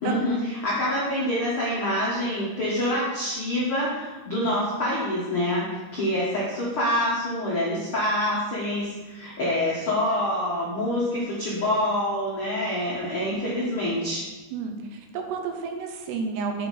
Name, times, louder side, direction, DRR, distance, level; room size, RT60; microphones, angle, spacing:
voice 1, 0.0-14.2, left 1 dB, 85° left, -7 dB, 1.2 m, -26 dB
voice 2, 14.5-16.7, right 5 dB, 75° right, 4 dB, 2.9 m, -31 dB
8.3 x 6.1 x 4.1 m, 1.2 s
omnidirectional pair, 5.1 m